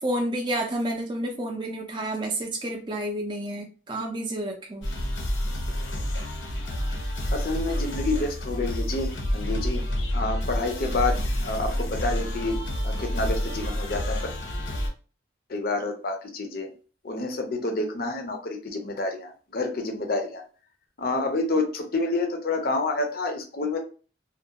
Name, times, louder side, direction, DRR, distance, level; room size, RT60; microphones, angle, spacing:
voice 1, 0.0-4.9, right 1 dB, 25° right, 1 dB, 0.4 m, -30 dB
sound 1, 4.8-14.9, equal, 90° left, 0.8 m, -28 dB
voice 2, 7.3-9.8 10.1-12.6 12.8-14.2 15.5-16.7 17.0-20.4 21.0-23.8, left 2 dB, 50° left, 4 dB, 0.5 m, -28 dB
2.4 x 2.2 x 2.8 m, 0.37 s
head